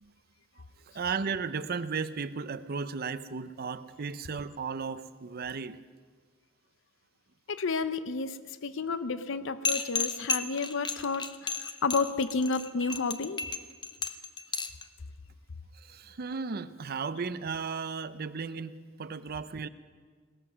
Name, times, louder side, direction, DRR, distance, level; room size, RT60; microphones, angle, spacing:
voice 1, 0.9-5.8 15.7-19.7, right 5 dB, 50° right, 13 dB, 0.6 m, -35 dB
voice 2, 7.5-13.4, left 4 dB, 65° left, 13 dB, 0.7 m, -31 dB
sound 1, 9.6-14.8, left 5 dB, 20° left, 0.6 m, -32 dB
17.5 x 13.5 x 6.2 m, 1.5 s
head